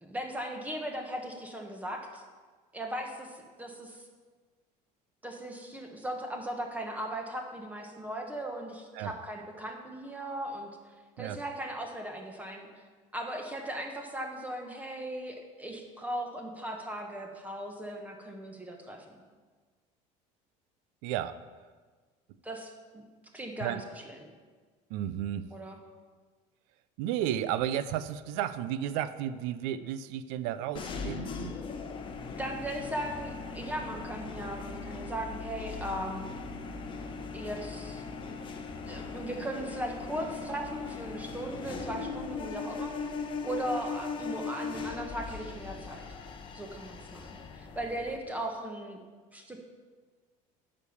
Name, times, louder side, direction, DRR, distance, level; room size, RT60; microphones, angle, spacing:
voice 1, 0.0-2.2 2.7-4.0 5.2-10.7 11.2-12.7 13.1-19.0 22.4-23.0 23.3-24.3 25.5-25.8 32.4-36.2 37.3-38.0 38.9-42.9 43.4-46.0 46.5-49.0 49.3-49.6, right 1 dB, 10° right, 2 dB, 1.1 m, -38 dB
voice 2, 21.0-21.4 23.6-23.8 24.9-25.5 27.0-31.6, right 11 dB, 80° right, 14 dB, 0.5 m, -33 dB
sound 1, 30.7-48.2, left 5 dB, 30° left, 0.9 m, -39 dB
9.3 x 5.2 x 7.0 m, 1.4 s
cardioid pair, 140°, 16 cm